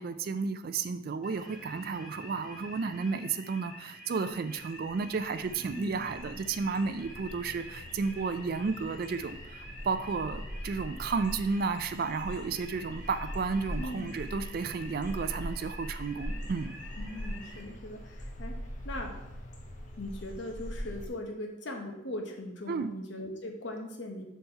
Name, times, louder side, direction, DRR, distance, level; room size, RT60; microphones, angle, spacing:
voice 1, 0.0-16.8 22.7-22.9, right 4 dB, 50° right, 10 dB, 0.3 m, -32 dB
sound 1, 1.2-17.6, equal, ahead, 1.3 m, -48 dB
sound 2, 4.6-21.1, equal, 40° left, 0.7 m, -42 dB
voice 2, 5.7-6.0 13.7-14.1 17.0-18.6 18.8-19.1 20.0-24.2, left 1 dB, 60° left, 2 dB, 1.0 m, -39 dB
5.5 x 4.2 x 4.4 m, 0.90 s
head